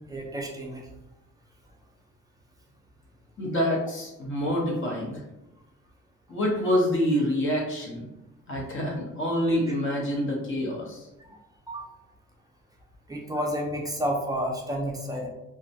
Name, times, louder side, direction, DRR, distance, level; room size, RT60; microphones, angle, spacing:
voice 1, 0.1-0.8 11.3-11.4 11.7-11.9 13.1-15.3, equal, 10° right, -1 dB, 0.6 m, -30 dB
voice 2, 3.4-5.2 6.3-8.0 8.5-11.0, equal, 40° left, -2 dB, 0.9 m, -26 dB
2.3 x 2.1 x 2.7 m, 0.94 s
cardioid pair, 90°, 30 cm